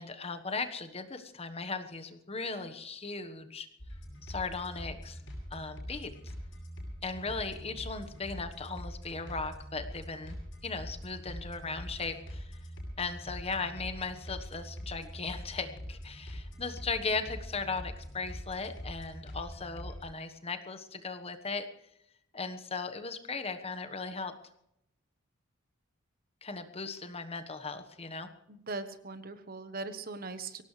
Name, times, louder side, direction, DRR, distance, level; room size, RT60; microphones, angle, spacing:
voice 1, 0.0-3.7 4.2-5.2 5.5-6.1 7.0-10.4 10.6-12.6 13.0-21.6 22.3-24.3 26.4-28.3, left 4 dB, 30° left, 9 dB, 1.3 m, -37 dB
sound 1, 3.8-20.0, equal, 70° left, 7.4 m, -43 dB
voice 2, 28.5-30.6, right 3 dB, 50° right, 10 dB, 1.2 m, -40 dB
23.0 x 18.0 x 3.3 m, 0.78 s
head